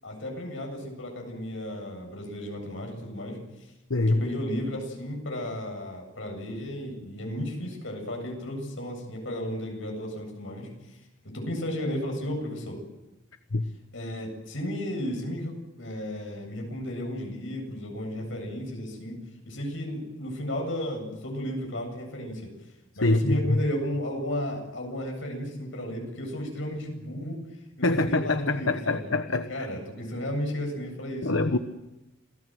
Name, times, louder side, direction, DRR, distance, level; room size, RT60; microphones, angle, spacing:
voice 1, 0.0-3.4 4.1-10.7 11.3-12.8 13.9-19.2 19.4-22.5 23.0-27.4 27.8-29.1 29.5-31.3, equal, 70° left, 2 dB, 7.9 m, -33 dB
voice 2, 3.9-4.2 13.5-13.7 23.0-23.6 27.8-29.7 31.2-31.6, left 2 dB, 85° left, 8 dB, 1.2 m, -24 dB
27.5 x 17.5 x 7.8 m, 0.98 s
head